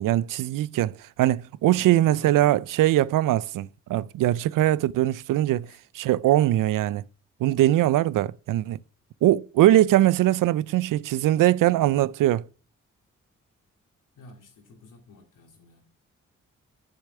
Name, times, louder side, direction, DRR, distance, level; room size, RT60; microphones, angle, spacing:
voice 1, 0.0-7.0 7.4-8.8 9.2-12.5, right 14 dB, 85° right, 0.5 m, -21 dB
voice 2, 1.7-2.9 5.7-5.8 14.2-15.9, left 2 dB, 80° left, 2.6 m, -50 dB
8.4 x 6.5 x 7.8 m
supercardioid pair, 45°, 31 cm